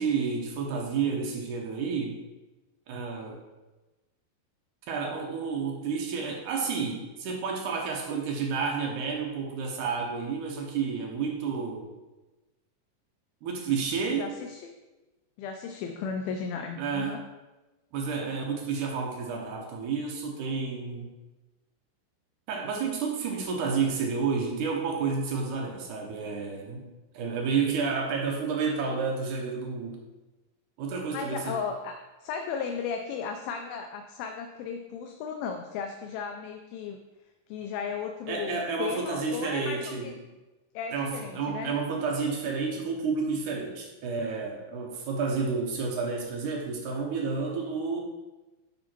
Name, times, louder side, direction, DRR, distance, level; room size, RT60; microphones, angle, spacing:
voice 1, 0.0-2.2 2.9-3.4 4.9-11.9 13.4-14.3 16.8-17.2 17.9-21.1 22.5-30.0 30.8-31.6 38.3-40.1 40.9-48.0, right 5 dB, 70° right, 0 dB, 2.0 m, -30 dB
voice 2, 14.1-14.7 15.4-17.2 31.1-37.0 37.5-40.2 40.7-41.8, left 6 dB, 80° left, 5 dB, 2.2 m, -35 dB
9.3 x 3.7 x 4.4 m, 1.1 s
omnidirectional pair, 4.5 m